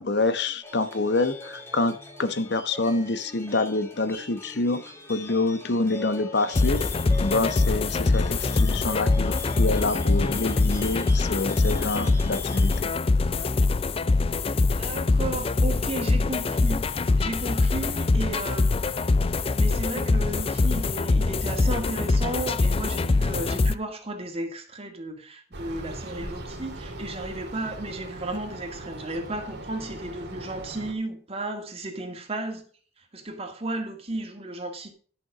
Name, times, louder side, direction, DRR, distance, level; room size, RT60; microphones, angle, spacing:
voice 1, 0.0-1.9 2.2-4.8 5.1-6.8 7.2-12.9, left 2 dB, 65° left, 1.1 m, -26 dB
sound 1, 0.6-12.8, left 2 dB, 15° left, 2.6 m, -41 dB
sound 2, 6.5-23.7, left 3 dB, 30° left, 0.4 m, -23 dB
voice 2, 14.8-18.8 19.3-32.6 33.0-34.9, right 2 dB, 35° right, 2.2 m, -34 dB
sound 3, 25.5-30.9, right 1 dB, 65° right, 2.0 m, -39 dB
11.0 x 7.1 x 5.0 m
head